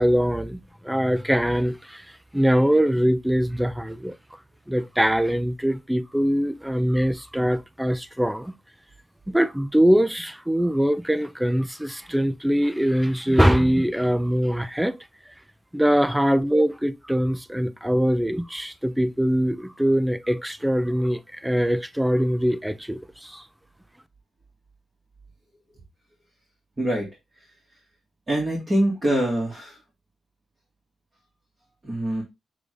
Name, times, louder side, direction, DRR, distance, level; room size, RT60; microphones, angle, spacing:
voice 1, 0.0-2.1 2.3-4.2 4.7-8.5 9.3-15.0 15.7-23.4, equal, 5° right, 0.4 m, -22 dB
voice 2, 26.8-27.1 28.3-29.8 31.8-32.2, right 1 dB, 30° right, 1.7 m, -24 dB
6.7 x 2.5 x 3.2 m
cardioid pair, 80°, 0 cm